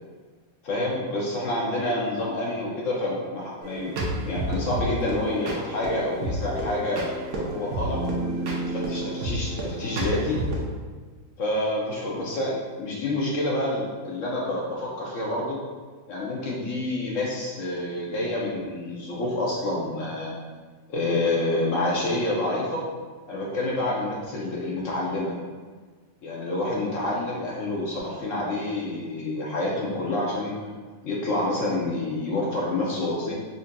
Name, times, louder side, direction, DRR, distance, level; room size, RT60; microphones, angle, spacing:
voice 1, 0.6-3.9 4.2-8.0 8.7-10.4 11.4-12.5 12.8-15.6 16.1-20.3 20.9-22.8 23.3-25.4 26.2-30.5 31.0-33.3, left 2 dB, 65° left, -3 dB, 0.8 m, -28 dB
sound 1, 3.6-10.6, right 1 dB, 65° right, 1.0 m, -30 dB
5.1 x 2.6 x 2.2 m, 1.5 s
omnidirectional pair, 1.8 m